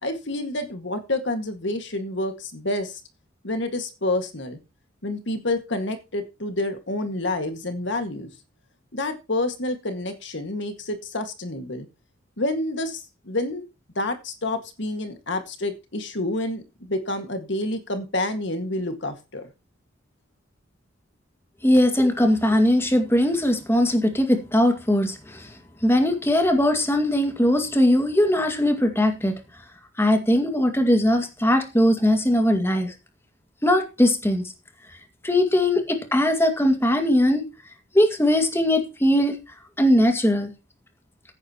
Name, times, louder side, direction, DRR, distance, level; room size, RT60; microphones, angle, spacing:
voice 1, 0.0-3.0 3.4-4.6 5.0-8.3 8.9-11.9 12.4-13.6 14.0-19.5, left 2 dB, 60° left, 1.9 m, -28 dB
voice 2, 21.6-25.5 25.8-29.3 30.0-32.9 33.6-34.4 35.2-37.4 37.9-39.4 39.8-40.5, left 1 dB, 10° left, 2.1 m, -20 dB
15.0 x 9.9 x 3.0 m
head